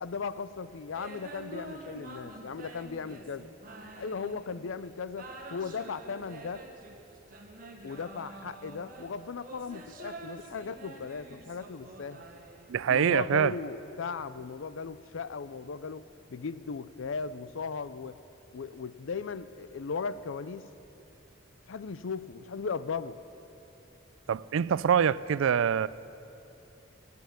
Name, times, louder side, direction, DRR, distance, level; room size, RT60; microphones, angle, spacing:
voice 1, 0.0-3.5 3.9-6.6 7.8-12.3 12.9-18.2 18.5-20.6 21.7-23.2, left 5 dB, 75° left, 0.5 m, -37 dB
sound 1, 0.9-4.7 5.1-13.0, right 2 dB, 45° right, 1.4 m, -47 dB
voice 2, 12.7-13.5 24.3-25.9, right 8 dB, 85° right, 0.3 m, -25 dB
15.5 x 8.5 x 9.3 m
head